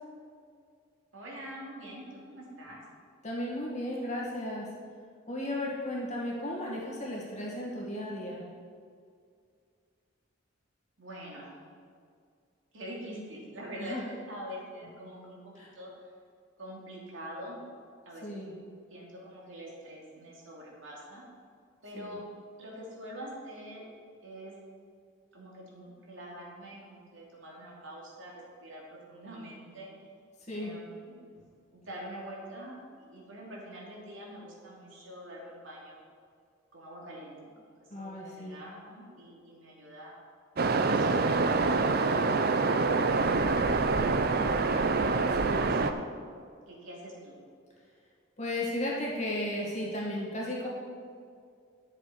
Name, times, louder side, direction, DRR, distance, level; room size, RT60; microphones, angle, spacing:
voice 1, 1.1-2.8 11.0-11.5 12.7-15.9 16.6-17.6 18.1-18.5 18.9-21.2 21.8-22.2 22.6-23.8 24.2-24.6 25.3-29.9 30.5-31.2 31.7-36.0 36.7-40.1 40.7-41.4 45.6-45.9 46.7-47.4, equal, 75° right, -3 dB, 2.7 m, -45 dB
voice 2, 3.2-4.7 5.3-8.4 13.8-14.1 15.6-15.7 18.2-18.5 21.9-22.2 30.5-30.7 37.9-38.6 45.4-45.7 48.4-50.7, left 1 dB, 35° left, -4 dB, 2.1 m, -35 dB
Waves surf, 40.6-45.9, right 3 dB, 50° right, 0.5 m, -26 dB
11.0 x 6.8 x 5.0 m, 2.2 s
head